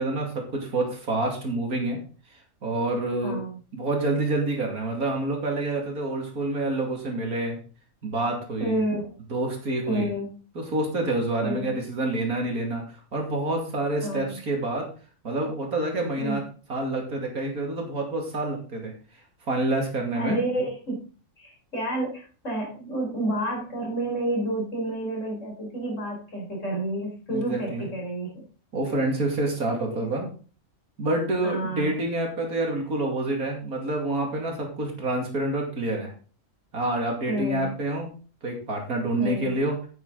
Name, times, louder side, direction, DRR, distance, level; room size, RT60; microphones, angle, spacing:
voice 1, 0.0-2.0 2.6-3.4 3.7-7.6 8.0-8.8 9.3-10.1 10.5-12.8 13.1-14.8 15.2-16.4 16.7-18.9 19.5-20.4 27.3-27.9 28.7-30.3 31.0-36.1 36.7-38.1 38.4-39.7, right 2 dB, 80° right, 1 dB, 3.1 m, -27 dB
voice 2, 3.2-3.6 8.6-9.1 9.9-10.3 11.4-11.7 14.0-14.4 16.2-16.4 20.1-21.0 21.4-28.4 29.7-30.2 31.4-32.0 37.3-37.7 39.2-39.5, right 1 dB, 55° left, -2 dB, 5.1 m, -30 dB
9.4 x 9.2 x 3.9 m, 0.38 s
omnidirectional pair, 1.5 m